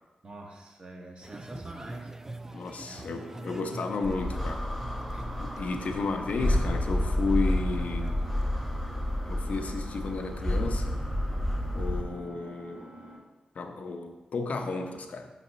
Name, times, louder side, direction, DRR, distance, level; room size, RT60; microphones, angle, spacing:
voice 1, 0.2-2.5 2.8-3.3 5.1-5.3, right 1 dB, 45° right, 0 dB, 1.3 m, -46 dB
sound 1, 1.2-9.2, right 2 dB, 20° right, 0.4 m, -45 dB
voice 2, 2.5-4.6 5.4-8.2 9.3-11.0 11.7-12.9 13.5-15.3, left 3 dB, 65° left, 5 dB, 0.7 m, -33 dB
Engine, 3.2-13.2, right 1 dB, 90° right, 1.2 m, -47 dB
sound 2, 4.0-12.0, left 1 dB, 5° left, 1.0 m, -30 dB
5.2 x 4.1 x 5.1 m, 1.1 s
cardioid pair, 55°, 3 cm